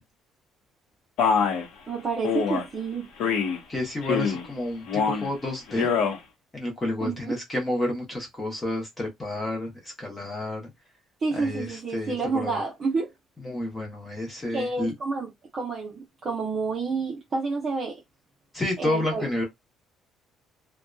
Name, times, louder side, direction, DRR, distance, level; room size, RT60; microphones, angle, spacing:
Male speech man speaking, 1.2-1.6 2.2-2.6 3.2-3.6 4.0-4.5 4.9-5.3 5.7-6.2, left 6 dB, 70° left, 0.8 m, -24 dB
voice 1, 1.9-3.1 7.0-7.4 11.2-13.1 14.5-18.0 18.8-19.3, right 4 dB, 25° right, 0.7 m, -29 dB
voice 2, 3.7-5.9 6.5-10.7 11.3-12.6 13.4-14.9 18.5-19.4, left 1 dB, 15° left, 0.9 m, -30 dB
2.7 x 2.2 x 2.3 m
cardioid pair, 170°, 0 cm